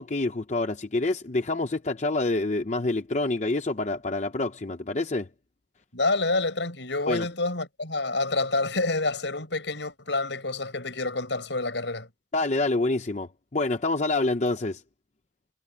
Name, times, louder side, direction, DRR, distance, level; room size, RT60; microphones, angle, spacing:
voice 1, 0.0-5.3 7.1-7.3 12.3-14.8, left 2 dB, 40° left, 0.7 m, -27 dB
voice 2, 5.9-12.1, left 3 dB, 80° left, 5.6 m, -28 dB
head